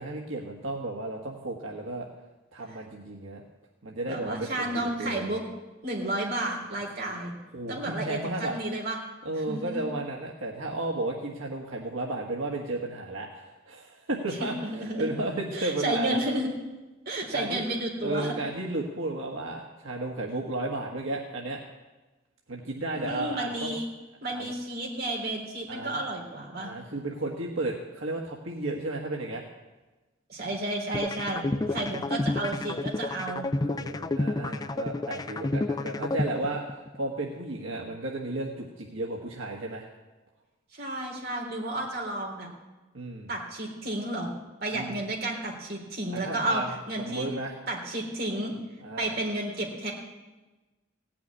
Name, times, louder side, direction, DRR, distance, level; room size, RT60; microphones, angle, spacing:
voice 1, 0.0-2.1 2.5-3.4 3.8-5.4 7.5-8.5 9.2-16.2 17.3-17.6 18.0-21.6 22.5-23.8 24.2-24.5 25.7-26.0 26.6-29.4 31.5-32.0 33.5-39.9 42.9-43.3 44.7-45.0 46.2-46.7 47.0-47.5 48.8-49.1, right 2 dB, 85° right, 0 dB, 1.5 m, -33 dB
voice 2, 4.1-5.4 5.8-7.3 7.7-9.0 9.4-9.9 14.4-15.1 15.5-16.5 17.1-18.3 22.9-23.9 24.2-26.7 30.3-31.4 31.7-33.5 40.7-42.5 43.3-44.3 44.6-47.3 47.7-48.5 49.0-49.9, right 1 dB, 50° right, -1 dB, 3.6 m, -32 dB
sound 1, 30.9-37.0, left 2 dB, 20° left, 0.4 m, -30 dB
17.0 x 6.0 x 9.7 m, 1.1 s
head